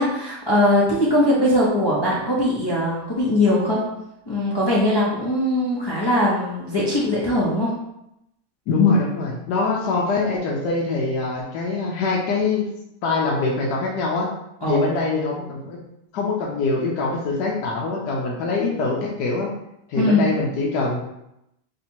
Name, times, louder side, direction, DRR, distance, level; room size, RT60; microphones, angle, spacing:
voice 1, 0.0-3.9 4.3-7.7 14.6-14.9 20.0-20.3, left 1 dB, 30° left, -7 dB, 0.4 m, -20 dB
voice 2, 8.7-12.7 13.0-14.3 14.6-15.8 16.1-19.5 19.9-21.0, left 3 dB, 80° left, -2 dB, 1.2 m, -23 dB
3.3 x 2.7 x 4.4 m, 0.84 s
omnidirectional pair, 1.8 m